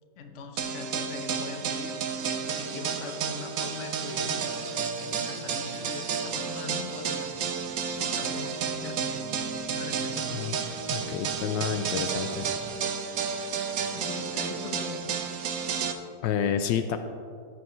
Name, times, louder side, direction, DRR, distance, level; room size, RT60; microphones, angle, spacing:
voice 1, 0.2-4.6 5.0-7.4 8.0-9.2 9.7-10.3 13.9-15.2, left 4 dB, 50° left, 5 dB, 0.9 m, -41 dB
sound 1, 0.6-15.9, right 6 dB, 65° right, 0.9 m, -31 dB
sound 2, 5.7-12.8, right 6 dB, 80° right, 1.6 m, -47 dB
voice 2, 10.9-12.5 16.2-17.0, left 8 dB, 75° left, 9 dB, 1.2 m, -29 dB
14.5 x 9.7 x 3.1 m, 2.2 s
omnidirectional pair, 2.1 m